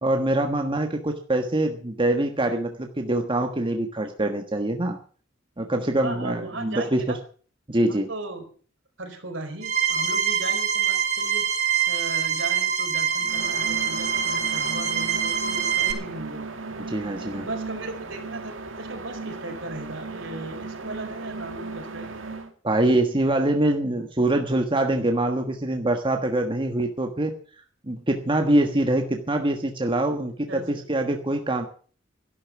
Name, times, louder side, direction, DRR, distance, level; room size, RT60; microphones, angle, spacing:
voice 1, 0.0-5.0 5.6-7.2 7.7-8.1 16.9-17.4 22.6-27.3 27.8-31.7, right 1 dB, 25° right, 4 dB, 1.4 m, -24 dB
voice 2, 6.0-7.2 7.9-8.5 9.0-16.4 16.9-22.2 30.5-30.9, right 2 dB, 70° right, 4 dB, 4.6 m, -37 dB
sound 1, 9.6-15.9, right 8 dB, 45° right, 4.1 m, -25 dB
sound 2, 13.2-22.5, right 3 dB, 85° right, 2.3 m, -36 dB
13.0 x 11.5 x 7.1 m, 0.43 s
head